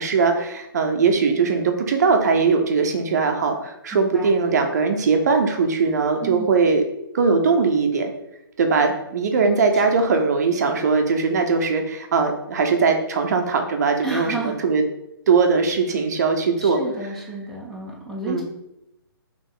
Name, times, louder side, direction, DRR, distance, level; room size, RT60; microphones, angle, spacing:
voice 1, 0.0-6.8 7.1-8.1 8.6-14.8 15.3-16.8 18.3-18.4, right 4 dB, 45° right, 5 dB, 0.6 m, -20 dB
voice 2, 3.9-4.3 6.2-6.6 14.0-14.5 16.6-18.4, right 2 dB, ahead, -6 dB, 0.5 m, -31 dB
4.0 x 3.0 x 3.8 m, 0.87 s
hypercardioid pair, 160°, 12 cm